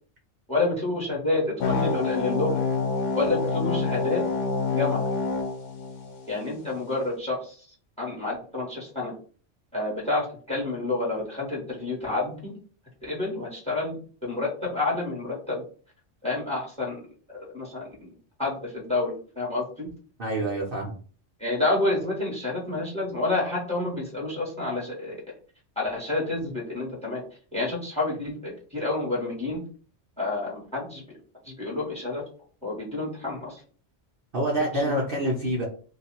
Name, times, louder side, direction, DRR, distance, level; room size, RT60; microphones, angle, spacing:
voice 1, 0.5-2.6 3.1-4.2 4.7-5.0 6.3-7.6 8.0-9.1 9.7-12.5 13.0-15.6 16.2-18.1 18.4-19.9 21.4-25.2 25.7-27.2 27.5-29.6 30.2-31.0 31.4-32.2 32.6-33.6 34.7-34.9, left 2 dB, 5° left, -3 dB, 1.8 m, -29 dB
sound 1, 1.6-6.6, left 4 dB, 80° left, 1.0 m, -27 dB
voice 2, 20.2-21.0 34.3-35.6, right 1 dB, 50° right, -3 dB, 1.0 m, -26 dB
2.8 x 2.7 x 4.4 m, 0.41 s
omnidirectional pair, 1.2 m